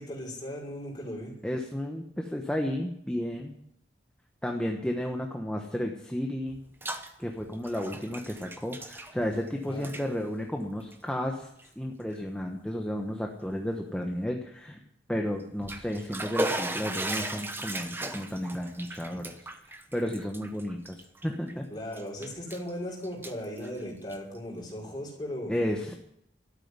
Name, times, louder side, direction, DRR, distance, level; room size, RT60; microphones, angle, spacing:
voice 1, 0.0-1.4 9.6-9.9 21.7-25.5, equal, 25° left, -3 dB, 5.7 m, -37 dB
voice 2, 1.4-3.6 4.4-6.6 7.2-14.8 15.1-21.6 25.5-26.0, equal, 5° left, 2 dB, 1.2 m, -33 dB
Bathtub (filling or washing), 6.5-7.1 7.4-9.5 9.8-10.1 10.8-11.0 11.6-11.7 12.1-12.2 15.4-21.5 21.9-22.7 23.0-24.4, right 1 dB, 15° right, 1.1 m, -36 dB
13.0 x 8.9 x 9.7 m, 0.76 s
head